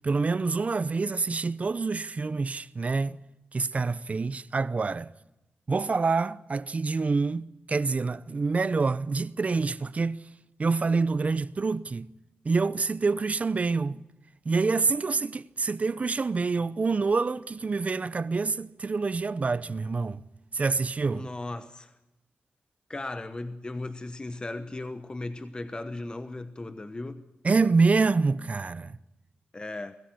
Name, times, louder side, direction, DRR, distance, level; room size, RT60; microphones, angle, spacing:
voice 1, 0.0-3.2 3.5-5.1 5.7-10.2 10.6-12.1 12.4-14.0 14.4-20.2 20.5-21.3 27.4-29.0, right 4 dB, 40° right, 0.7 m, -26 dB
voice 2, 21.1-22.0 22.9-27.3 29.5-29.9, left 2 dB, 25° left, 1.1 m, -37 dB
23.5 x 15.0 x 9.6 m
wide cardioid pair, 90°, 4 cm